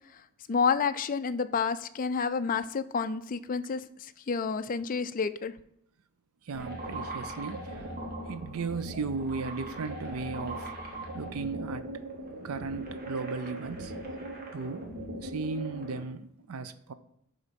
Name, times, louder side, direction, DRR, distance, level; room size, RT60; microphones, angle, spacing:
voice 1, 0.5-5.5, left 5 dB, 40° left, 0.4 m, -29 dB
voice 2, 6.4-7.8 8.3-10.7 11.1-11.9 12.4-13.9 14.5-14.9 15.2-16.9, right 4 dB, 70° right, 0.5 m, -36 dB
sound 1, 6.5-16.0, right 1 dB, 40° right, 1.5 m, -40 dB
11.0 x 3.6 x 5.2 m
head